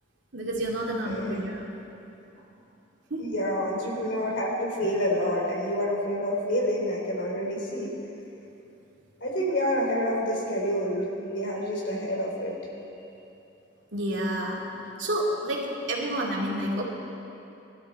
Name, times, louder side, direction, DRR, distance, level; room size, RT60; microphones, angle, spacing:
voice 1, 0.3-1.6 3.1-3.3 13.9-14.6 15.0-16.8, right 1 dB, 70° right, -3 dB, 2.6 m, -29 dB
voice 2, 1.0-1.4 3.2-7.9 9.2-12.6, equal, 65° left, -2 dB, 3.6 m, -28 dB
21.0 x 12.5 x 4.3 m, 2.9 s
head